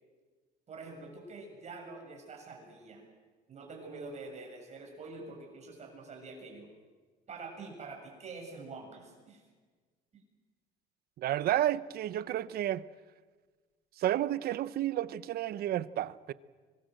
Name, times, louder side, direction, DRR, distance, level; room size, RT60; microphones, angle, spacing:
voice 1, 0.7-3.1 3.5-6.7 7.3-9.4 10.1-10.2, right 3 dB, 40° right, 7.3 m, -46 dB
voice 2, 11.2-12.8 14.0-16.3, right 12 dB, 65° right, 0.8 m, -31 dB
25.0 x 21.0 x 7.8 m
cardioid pair, 110°, 17 cm